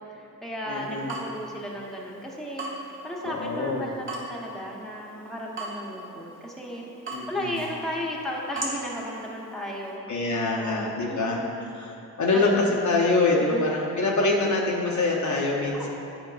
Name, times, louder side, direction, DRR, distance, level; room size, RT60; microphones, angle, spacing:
voice 1, 0.0-2.7 3.0-6.8 7.3-10.0 10.5-11.7 12.3-12.6 13.5-13.7 15.7-15.9, equal, ahead, -3 dB, 1.1 m, -35 dB
voice 2, 0.7-1.2 3.2-3.9 7.1-7.6 10.1-11.4 11.7-15.9, left 3 dB, 45° left, -3 dB, 0.9 m, -25 dB
Water tap faucet / Drip, 0.7-10.0, right 2 dB, 30° right, 1.3 m, -40 dB
9.1 x 4.6 x 2.5 m, 2.7 s
supercardioid pair, 55°, 40 cm